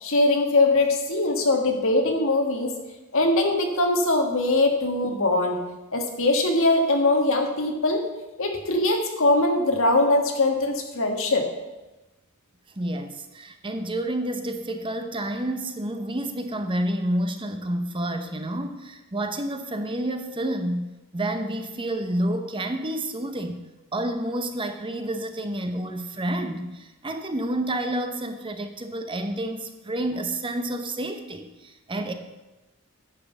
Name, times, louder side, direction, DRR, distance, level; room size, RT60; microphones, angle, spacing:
voice 1, 0.0-2.7 3.1-5.6 5.9-8.0 8.4-11.5, left 2 dB, 65° left, 3 dB, 1.7 m, -22 dB
voice 2, 12.8-32.1, right 1 dB, 25° right, 7 dB, 0.8 m, -29 dB
10.0 x 5.8 x 7.1 m, 1.1 s
head